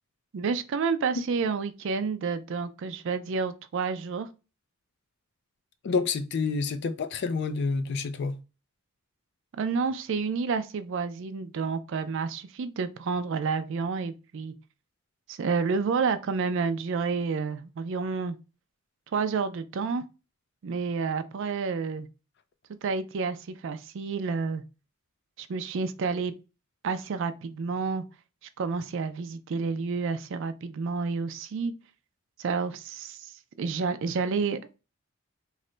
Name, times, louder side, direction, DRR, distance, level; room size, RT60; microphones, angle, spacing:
voice 1, 0.3-4.3 9.5-14.5 15.3-18.4 19.1-20.0 20.6-22.1 22.8-24.6 25.4-26.3 26.8-28.0 28.6-31.7 32.4-34.8, right 5 dB, 60° right, 0.4 m, -30 dB
voice 2, 5.8-8.3, left 4 dB, 50° left, 0.4 m, -28 dB
3.1 x 2.1 x 3.7 m
head